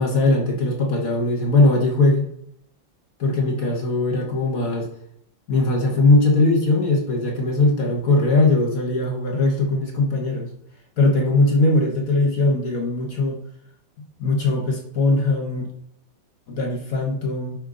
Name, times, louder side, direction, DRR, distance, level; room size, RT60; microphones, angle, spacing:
voice 1, 0.0-2.3 3.2-4.9 5.5-10.5 11.0-13.4 14.2-15.7 16.5-17.6, left 2 dB, 55° left, 1 dB, 1.2 m, -20 dB
5.4 x 5.1 x 3.7 m, 0.76 s
omnidirectional pair, 2.1 m